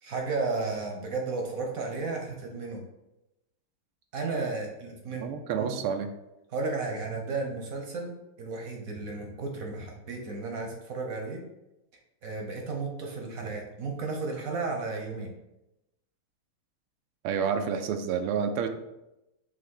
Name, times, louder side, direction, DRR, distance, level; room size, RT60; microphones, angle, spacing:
voice 1, 0.0-2.8 4.1-5.3 5.6-5.8 6.5-11.4 12.2-15.3, right 3 dB, 55° right, 1 dB, 1.1 m, -33 dB
voice 2, 5.2-6.1 17.2-18.7, right 7 dB, 90° right, 6 dB, 1.5 m, -29 dB
5.7 x 3.4 x 5.5 m, 0.92 s
omnidirectional pair, 2.4 m